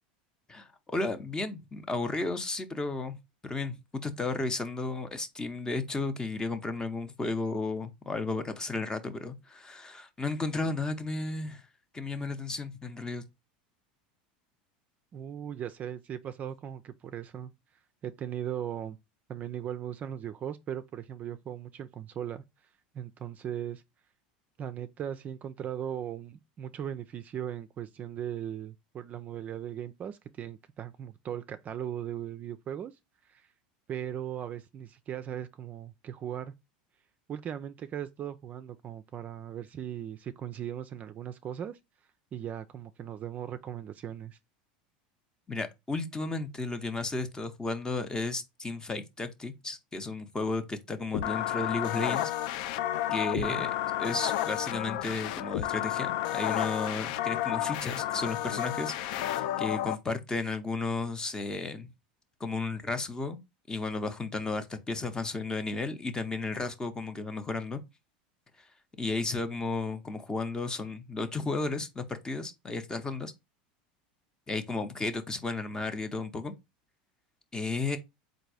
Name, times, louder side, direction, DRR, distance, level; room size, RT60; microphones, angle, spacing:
voice 1, 0.5-3.2 3.4-11.6 11.9-13.2 45.5-52.3 53.1-53.7 54.0-61.9 62.4-63.4 63.7-67.8 69.0-73.3 74.5-76.5 77.5-78.0, left 3 dB, 15° left, 0.7 m, -33 dB
voice 2, 15.1-17.5 18.0-19.0 19.3-22.4 22.9-23.8 24.6-32.9 33.3-33.5 33.9-36.5 37.3-41.8 42.3-44.4 53.4-53.7, right 10 dB, 35° right, 0.4 m, -38 dB
sound 1, 51.1-59.9, left 13 dB, 65° left, 0.4 m, -31 dB
3.9 x 2.6 x 4.7 m
hypercardioid pair, 100°, 5 cm